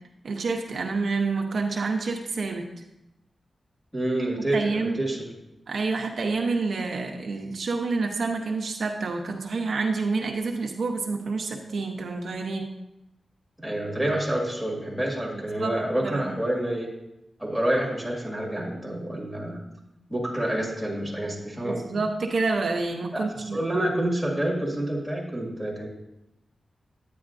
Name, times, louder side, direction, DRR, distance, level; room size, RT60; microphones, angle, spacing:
voice 1, 0.2-2.6 4.5-5.0 5.7-12.7 15.4-15.8 16.0-16.3 21.6-23.6, right 3 dB, 65° right, 1 dB, 0.8 m, -28 dB
voice 2, 3.9-5.2 13.6-16.9 17.4-19.6 20.1-22.0 23.1-25.9, right 1 dB, ahead, -3 dB, 2.0 m, -28 dB
9.6 x 9.4 x 2.6 m, 0.90 s
wide cardioid pair, 145°, 0 cm